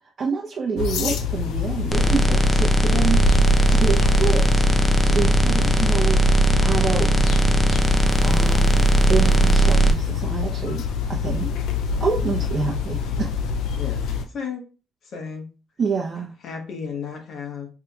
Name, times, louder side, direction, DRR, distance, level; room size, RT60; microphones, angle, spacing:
voice 1, 0.2-3.2 3.7-4.6 5.0-6.2 6.6-7.5 8.2-10.8 11.1-11.5 12.0-13.3 15.8-16.3, right 5 dB, 45° right, -3 dB, 0.7 m, -27 dB
sound 1, 0.8-14.3, left 6 dB, 85° left, 0.4 m, -26 dB
sound 2, 1.9-9.9, equal, 15° left, 0.5 m, -19 dB
sound 3, 3.0-9.9, right 6 dB, 90° right, 0.4 m, -24 dB
voice 2, 8.0-8.4 13.8-14.0 14.3-14.6 15.1-15.5 16.4-17.7, left 6 dB, 65° left, 3 dB, 1.1 m, -33 dB
4.7 x 2.8 x 2.3 m, 0.35 s
cardioid pair, 90°, 0 cm